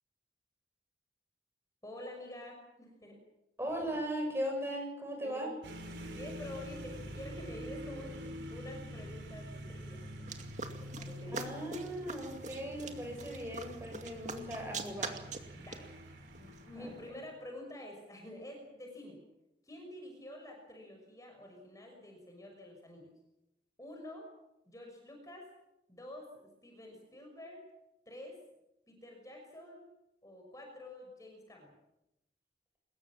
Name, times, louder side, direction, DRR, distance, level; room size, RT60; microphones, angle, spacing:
voice 1, 1.8-3.2 5.2-5.5 6.1-10.1 10.8-11.5 15.5-15.9 16.4-19.2 19.6-23.1 23.8-24.3 24.7-25.5 25.9-27.6 28.1-28.4 28.9-29.9 30.2-31.8, left 1 dB, 20° left, 1 dB, 5.9 m, -48 dB
voice 2, 3.6-5.5 11.3-15.2 16.8-16.9, equal, 15° right, 2 dB, 7.3 m, -38 dB
sound 1, 5.6-17.4, equal, 85° right, 5.0 m, -46 dB
sound 2, 10.3-17.1, right 4 dB, 40° right, 2.4 m, -45 dB
24.5 x 21.5 x 7.4 m, 0.88 s
head